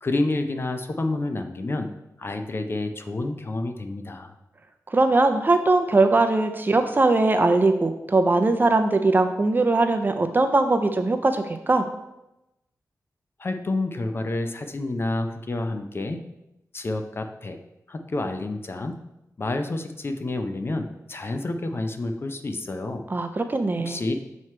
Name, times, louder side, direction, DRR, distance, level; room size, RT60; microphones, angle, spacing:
voice 1, 0.0-1.9 2.2-4.3 13.4-16.2 16.7-17.6 17.9-19.0 19.4-23.0 23.8-24.1, left 2 dB, 40° left, 6 dB, 0.5 m, -29 dB
voice 2, 4.9-11.8 23.1-24.0, right 2 dB, 30° right, 7 dB, 0.5 m, -20 dB
7.5 x 3.1 x 4.4 m, 0.91 s
wide cardioid pair, 90°, 6 cm